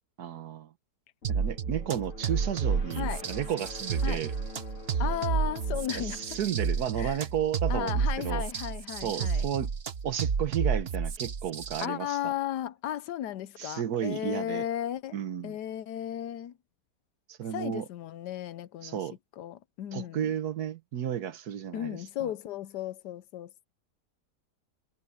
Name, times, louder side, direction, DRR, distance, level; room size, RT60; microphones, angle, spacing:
voice 1, 0.2-0.7 1.3-4.3 5.9-8.4 9.0-9.7 10.0-12.3 13.6-14.6 15.1-15.6 17.3-17.8 18.8-19.2 19.9-22.3, right 9 dB, 70° right, 1.5 m, -33 dB
sound 1, 1.2-7.9, left 4 dB, 50° left, 2.5 m, -47 dB
sound 2, 1.2-11.9, right 6 dB, 45° right, 1.0 m, -30 dB
voice 2, 3.0-3.3 4.0-4.2 5.0-6.4 7.0-7.2 7.7-9.5 11.8-15.2 15.4-16.6 17.5-19.1 19.4-20.3 21.7-23.7, left 11 dB, 80° left, 1.3 m, -35 dB
omnidirectional pair, 1.8 m